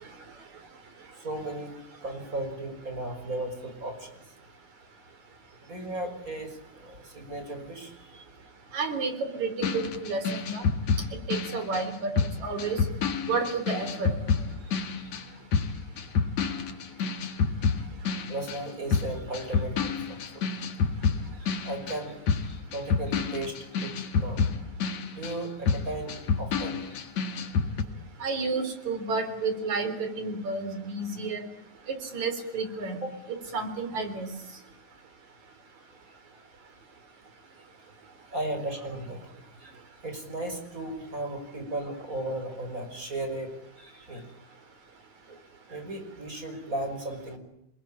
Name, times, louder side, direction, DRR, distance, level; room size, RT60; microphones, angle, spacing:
voice 1, 1.2-1.7 2.0-4.2 5.6-8.1 10.9-11.0 14.6-15.1 18.3-20.4 21.4-24.4 25.1-27.0 27.3-27.6 38.3-39.2 39.6-39.7 40.0-43.5 43.8-44.3 45.3-45.4 45.7-47.4, right 1 dB, 25° right, 6 dB, 6.1 m, -36 dB
voice 2, 8.7-10.7 11.3-12.1 12.4-12.8 13.2-14.1 28.2-31.5 31.9-33.0 33.3-34.3, right 4 dB, 70° right, 9 dB, 5.2 m, -31 dB
sound 1, 9.6-18.6 18.9-27.8, left 5 dB, 65° left, 3.1 m, -28 dB
28.0 x 21.0 x 8.9 m, 0.79 s
omnidirectional pair, 3.4 m